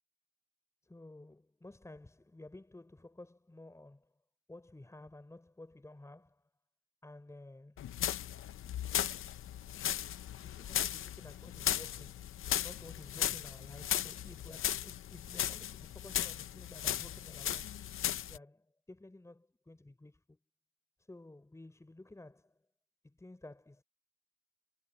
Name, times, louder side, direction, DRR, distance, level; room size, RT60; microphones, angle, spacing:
voice 1, 0.8-4.1 4.5-6.5 7.0-7.9 10.4-12.3 12.6-17.8 18.3-20.4 21.1-22.6 23.0-23.8, left 2 dB, 5° left, 4.2 m, -53 dB
sound 1, 7.8-18.4, left 11 dB, 30° left, 0.6 m, -36 dB
cardioid pair, 160°, 44 cm